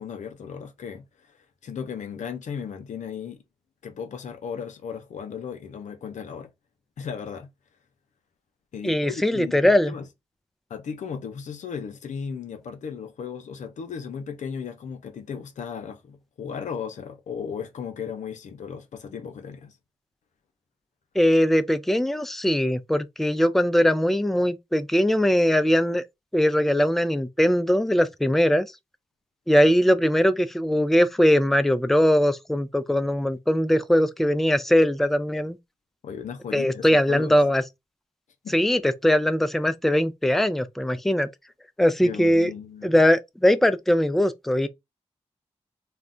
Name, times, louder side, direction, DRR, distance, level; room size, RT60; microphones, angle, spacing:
voice 1, 0.0-1.4 1.6-3.4 3.8-6.5 7.0-7.5 8.7-10.1 10.7-19.7 36.0-37.4 38.4-38.6 42.0-42.9, left 7 dB, 85° left, 0.5 m, -36 dB
voice 2, 8.8-9.9 21.2-26.0 26.3-28.7 29.5-35.6 36.5-37.6 38.5-41.3 41.8-42.5 42.8-44.7, equal, ahead, 0.4 m, -21 dB
2.4 x 2.0 x 3.7 m
cardioid pair, 40°, 12 cm